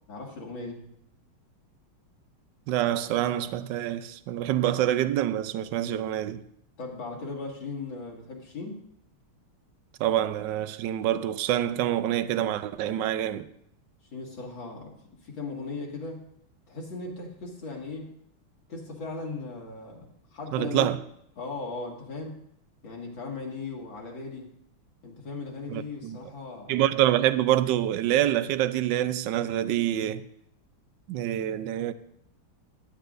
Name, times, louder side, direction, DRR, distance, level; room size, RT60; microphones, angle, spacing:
voice 1, 0.1-0.8 6.8-8.8 14.1-15.0 15.2-16.2 16.7-18.1 18.7-20.1 20.3-20.9 21.4-22.4 22.8-24.5 25.0-26.8, left 3 dB, 65° left, 2.7 m, -37 dB
voice 2, 2.7-6.4 10.0-13.5 20.5-21.0 25.7-26.2 26.7-30.3 31.1-31.9, right 12 dB, 75° right, 1.1 m, -26 dB
16.0 x 11.5 x 2.6 m
omnidirectional pair, 2.3 m